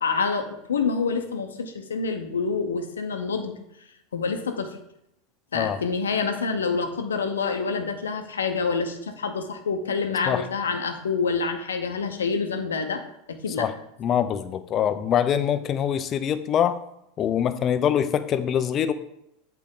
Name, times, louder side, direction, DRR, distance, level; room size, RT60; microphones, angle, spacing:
voice 1, 0.0-3.6 4.1-4.8 5.5-13.0 13.3-13.7, left 5 dB, 80° left, 6 dB, 0.8 m, -27 dB
voice 2, 14.0-16.8 17.2-18.9, left 9 dB, 40° left, 12 dB, 0.6 m, -24 dB
8.3 x 4.5 x 3.8 m, 0.80 s
hypercardioid pair, 85°, 0 cm